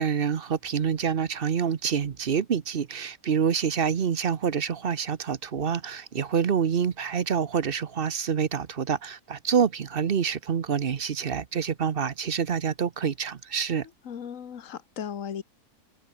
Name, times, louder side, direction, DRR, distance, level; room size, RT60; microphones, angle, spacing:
voice 1, 0.0-13.9, right 7 dB, 45° right, 0.9 m, -27 dB
voice 2, 14.0-15.4, left 8 dB, 60° left, 1.7 m, -36 dB
open air
omnidirectional pair, 1.6 m